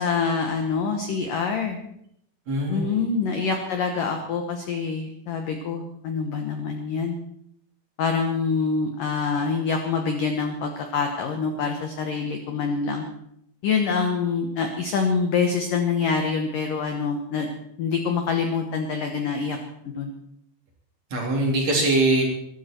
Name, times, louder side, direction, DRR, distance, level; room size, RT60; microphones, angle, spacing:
voice 1, 0.0-1.8 2.7-7.2 8.0-13.1 13.6-17.5 17.8-19.6 19.8-20.1, left 5 dB, 70° left, 4 dB, 2.1 m, -25 dB
voice 2, 2.5-3.0 21.1-22.2, right 2 dB, 40° right, -1 dB, 4.0 m, -22 dB
22.5 x 13.0 x 4.5 m, 0.73 s
omnidirectional pair, 5.7 m